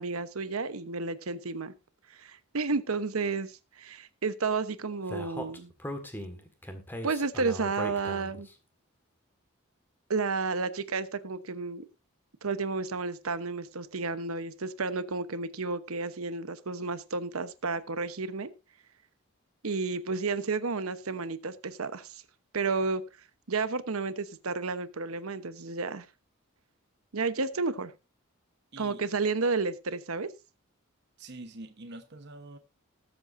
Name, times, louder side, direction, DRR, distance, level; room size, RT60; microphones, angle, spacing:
voice 1, 0.0-1.7 2.2-5.7 7.0-8.5 10.1-11.8 12.4-18.5 19.6-22.2 22.5-23.0 23.5-26.1 27.1-27.9 28.8-30.3, right 4 dB, 80° right, 1.0 m, -31 dB
Speech, 5.1-8.5, equal, 10° left, 1.7 m, -39 dB
voice 2, 28.7-29.0 31.2-32.6, right 2 dB, 50° right, 1.1 m, -45 dB
19.5 x 7.8 x 2.6 m
head